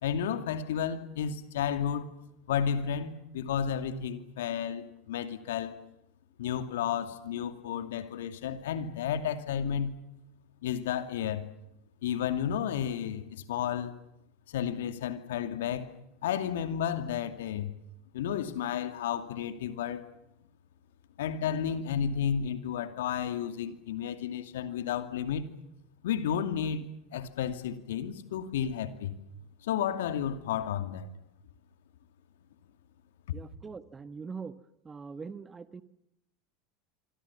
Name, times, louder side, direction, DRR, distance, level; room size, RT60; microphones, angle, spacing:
voice 1, 0.0-2.1 2.5-5.7 6.4-10.0 10.6-11.4 12.0-13.9 14.5-15.9 16.2-17.7 18.1-20.1 21.2-25.5 26.0-29.2 29.6-31.1 33.3-33.4, left 8 dB, 70° left, 9 dB, 2.4 m, -32 dB
voice 2, 33.3-34.6 34.8-35.8, right 5 dB, 20° right, 13 dB, 1.4 m, -42 dB
26.5 x 25.5 x 7.2 m, 0.81 s
figure-of-eight pair, 80°, 0 cm